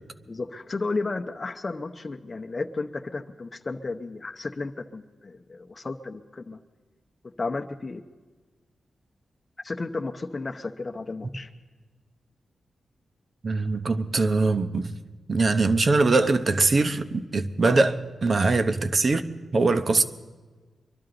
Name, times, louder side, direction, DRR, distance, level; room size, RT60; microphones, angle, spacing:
voice 1, 0.3-6.6 7.4-8.0 9.6-11.5 17.6-17.8, left 3 dB, 35° left, 0.8 m, -33 dB
voice 2, 13.4-14.9 15.3-17.9 18.2-19.2 19.5-20.0, right 3 dB, 50° right, 0.9 m, -22 dB
23.5 x 12.5 x 3.9 m
cardioid pair, 80°, 0 cm